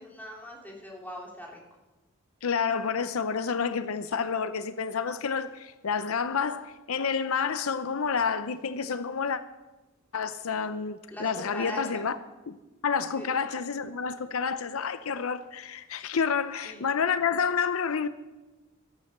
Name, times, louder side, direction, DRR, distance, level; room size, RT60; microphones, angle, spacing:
voice 1, 0.0-1.6 11.1-12.1 13.1-13.3 16.6-16.9, equal, 10° left, 3.1 m, -41 dB
voice 2, 2.4-9.4 10.1-12.2 12.5-12.6 12.8-18.1, left 6 dB, 80° left, 0.7 m, -29 dB
14.0 x 12.5 x 6.6 m
head